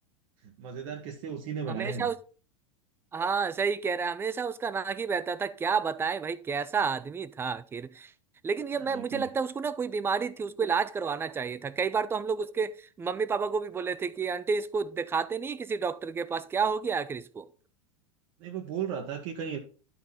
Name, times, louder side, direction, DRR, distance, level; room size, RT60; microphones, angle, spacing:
voice 1, 0.4-2.1 8.7-9.3 18.4-19.6, right 7 dB, 45° right, 1.1 m, -36 dB
voice 2, 1.7-2.2 3.1-8.1 8.4-17.5, right 5 dB, 15° right, 0.5 m, -30 dB
11.5 x 4.3 x 4.1 m
figure-of-eight pair, 85°, 17 cm